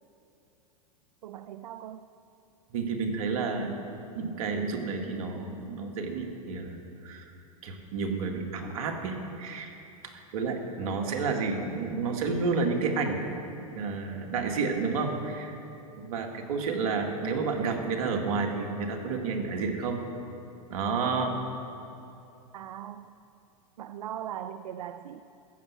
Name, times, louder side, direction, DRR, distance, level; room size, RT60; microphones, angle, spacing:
voice 1, 1.2-2.1 22.5-23.1 23.8-25.2, right 10 dB, 85° right, 11 dB, 0.5 m, -39 dB
voice 2, 2.7-3.8 4.2-7.3 7.6-9.7 10.0-13.3 13.7-15.6 15.9-20.0 20.7-21.3, right 4 dB, 70° right, 3 dB, 1.9 m, -30 dB
14.5 x 7.1 x 8.3 m, 2.8 s
hypercardioid pair, 115°, 19 cm